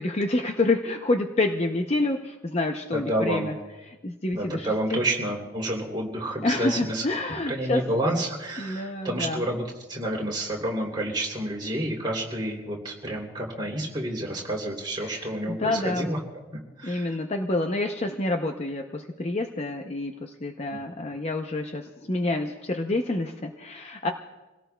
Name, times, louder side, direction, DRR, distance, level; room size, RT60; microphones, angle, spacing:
voice 1, 0.0-3.5 3.9-5.0 6.4-7.8 8.6-9.4 15.0-16.1 16.8-24.1, left 2 dB, 30° left, 4 dB, 0.6 m, -28 dB
voice 2, 2.9-3.5 4.3-7.0 7.5-9.6 9.9-16.2 16.8-17.2 20.7-20.8, right 1 dB, 20° right, -2 dB, 2.9 m, -29 dB
27.0 x 17.5 x 2.3 m, 1.1 s
head